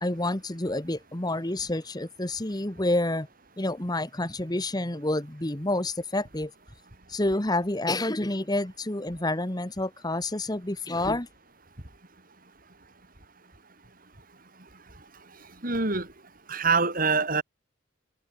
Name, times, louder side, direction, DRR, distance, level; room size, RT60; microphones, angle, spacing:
voice 1, 0.0-3.3 3.6-6.5 7.1-11.3, left 2 dB, 20° left, 1.4 m, -28 dB
voice 2, 15.6-16.1 16.5-17.4, right 4 dB, 45° right, 3.9 m, -24 dB
head